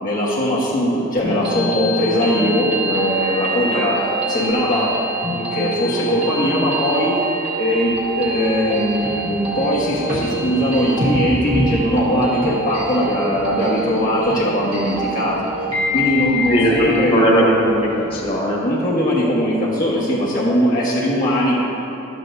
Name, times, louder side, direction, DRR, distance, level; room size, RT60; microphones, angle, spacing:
voice 1, 0.0-4.9 5.3-7.1 7.6-15.5 15.9-17.5 18.6-21.6, equal, 45° left, -7 dB, 1.1 m, -20 dB
sound 1, 1.2-17.2, right 1 dB, 30° right, 1.3 m, -25 dB
sound 2, 7.8-18.3, equal, 50° right, 1.4 m, -30 dB
voice 2, 16.5-18.6, equal, 30° left, -4 dB, 1.4 m, -18 dB
11.5 x 8.2 x 2.6 m, 2.9 s
head